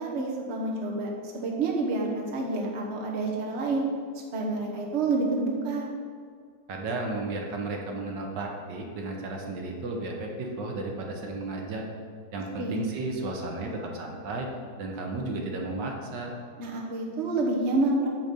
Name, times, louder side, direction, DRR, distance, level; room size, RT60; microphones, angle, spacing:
voice 1, 0.0-3.8 4.3-5.9 12.6-12.8 16.6-18.1, right 2 dB, 40° right, -2 dB, 1.4 m, -28 dB
voice 2, 6.7-11.8 12.3-14.5 14.8-16.3, right 2 dB, 75° right, 1 dB, 1.6 m, -33 dB
9.0 x 3.9 x 6.9 m, 2.1 s
omnidirectional pair, 1.9 m